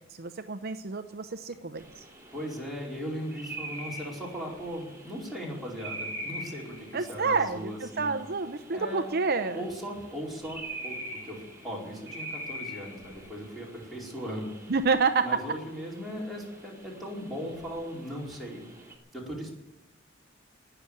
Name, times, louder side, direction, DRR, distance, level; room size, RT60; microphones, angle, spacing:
voice 1, 0.2-2.0 6.9-9.6 14.7-15.3, right 4 dB, 55° right, 8 dB, 0.8 m, -28 dB
sound 1, 1.8-19.0, right 1 dB, 15° right, 3.6 m, -44 dB
voice 2, 2.3-8.1 8.7-9.1 9.5-14.7 15.2-18.6 19.1-19.6, equal, ahead, -4 dB, 4.7 m, -38 dB
19.5 x 7.0 x 9.9 m, 0.92 s
head